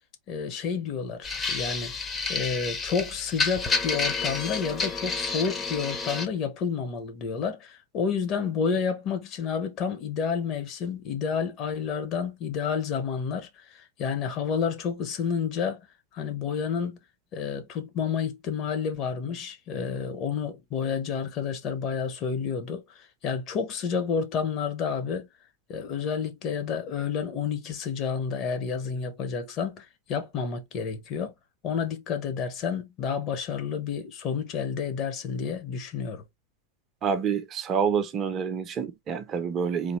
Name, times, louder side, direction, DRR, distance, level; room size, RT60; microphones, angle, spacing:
voice 1, 0.3-1.9 2.3-15.8 16.1-17.0 17.3-25.3 25.7-31.3 31.6-36.2, left 6 dB, 35° left, 1.1 m, -30 dB
sound 1, 1.2-6.3, left 4 dB, 20° left, 0.9 m, -30 dB
voice 2, 37.0-40.0, right 6 dB, 30° right, 0.7 m, -27 dB
3.9 x 2.9 x 3.1 m
figure-of-eight pair, 90°, 0 cm